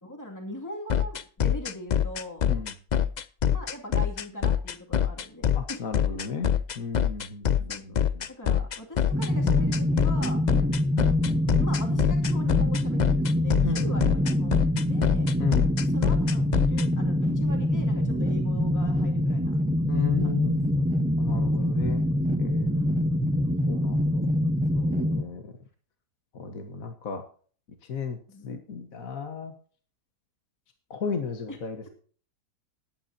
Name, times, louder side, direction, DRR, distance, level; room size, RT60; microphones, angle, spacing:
voice 1, 0.0-2.7 3.5-6.2 7.4-8.0 8.3-10.4 11.0-11.1 11.6-14.5 14.8-15.4 15.9-19.6 20.2-20.8 22.6-23.2 24.7-25.0 28.3-28.5 31.5-31.6, left 1 dB, 10° left, 1 dB, 2.3 m, -41 dB
sound 1, 0.9-16.8, left 9 dB, 80° left, 0.4 m, -24 dB
voice 2, 5.6-6.5 6.8-8.3 10.5-10.7 13.6-14.1 15.4-15.7 19.9-20.8 21.2-22.0 22.4-23.0 23.7-24.2 25.0-25.5 26.3-27.2 27.8-28.2 28.4-29.5 30.9-31.9, left 6 dB, 60° left, 5 dB, 1.7 m, -34 dB
sound 2, 9.1-25.2, left 1 dB, 5° right, 0.8 m, -25 dB
20.0 x 9.1 x 2.8 m, 0.43 s
omnidirectional pair, 1.6 m